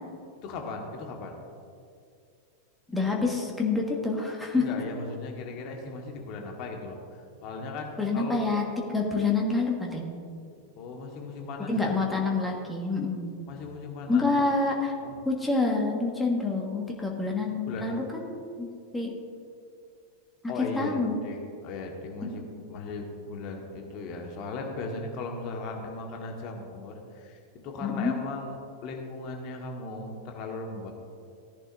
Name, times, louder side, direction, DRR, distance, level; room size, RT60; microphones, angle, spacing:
voice 1, 0.4-1.3 4.5-8.4 10.6-11.9 13.5-14.5 15.0-15.1 17.4-18.0 20.5-30.9, left 3 dB, 40° left, 2 dB, 1.5 m, -38 dB
voice 2, 2.9-4.7 8.0-8.6 8.9-10.2 11.7-13.5 14.1-14.9 15.2-18.7 18.9-19.1 20.6-21.2 22.2-22.4 27.8-28.1, left 3 dB, 10° left, -1 dB, 1.6 m, -27 dB
17.0 x 10.5 x 2.7 m, 2.4 s
figure-of-eight pair, 90°, 0 cm